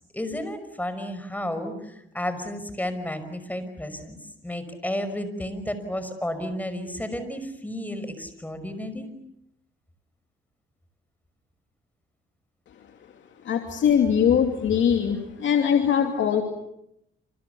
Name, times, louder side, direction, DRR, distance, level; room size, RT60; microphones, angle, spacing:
voice 1, 0.1-9.1, left 1 dB, 10° left, 10 dB, 5.5 m, -32 dB
voice 2, 13.4-16.4, left 8 dB, 70° left, 4 dB, 2.8 m, -21 dB
28.0 x 27.0 x 7.1 m, 0.80 s
cardioid pair, 90°, 20 cm